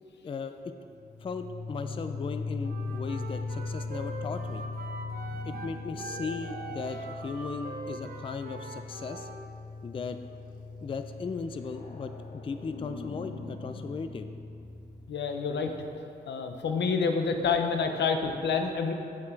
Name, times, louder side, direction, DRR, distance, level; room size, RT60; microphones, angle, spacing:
voice 1, 0.2-0.7 1.2-4.6 5.4-9.3 9.8-10.2 10.8-14.3, left 5 dB, 30° left, 8 dB, 0.3 m, -37 dB
sound 1, 0.9-15.5, left 3 dB, 50° left, 1.2 m, -39 dB
Wind instrument woodwind instrument, 2.6-9.4, right 3 dB, 60° right, 0.9 m, -42 dB
voice 2, 15.1-15.7 16.3-18.9, left 5 dB, 90° left, 5 dB, 0.8 m, -28 dB
8.8 x 7.2 x 4.5 m, 2.5 s
wide cardioid pair, 155°, 18 cm